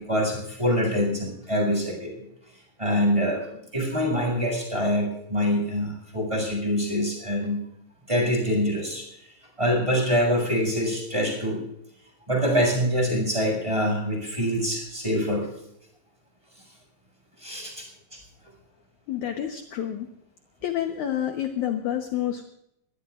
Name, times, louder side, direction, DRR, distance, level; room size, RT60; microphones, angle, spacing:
voice 1, 0.0-2.2 2.8-3.5 3.7-7.6 8.1-9.1 9.6-11.6 12.3-15.5 17.4-17.9 18.1-18.2, equal, 10° right, 1 dB, 6.9 m, -25 dB
voice 2, 19.1-20.1 20.6-22.4, left 10 dB, 65° left, 5 dB, 2.2 m, -28 dB
25.0 x 18.0 x 2.5 m, 0.77 s
omnidirectional pair, 4.2 m